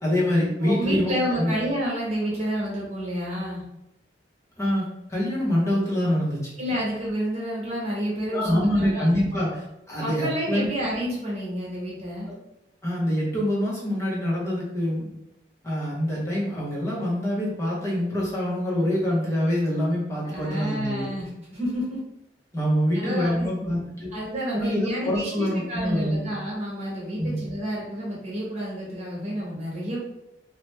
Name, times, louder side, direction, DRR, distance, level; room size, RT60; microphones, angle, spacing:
voice 1, 0.0-1.5 4.6-6.5 8.3-9.6 9.9-10.7 12.8-15.1 15.6-21.1 22.5-24.1 24.5-26.3 27.2-27.4, equal, 15° left, -6 dB, 0.7 m, -25 dB
voice 2, 0.6-3.6 6.6-9.4 10.0-12.3 20.2-22.0 22.9-23.7 24.1-30.0, equal, 40° right, -5 dB, 1.2 m, -30 dB
2.9 x 2.0 x 3.1 m, 0.85 s
head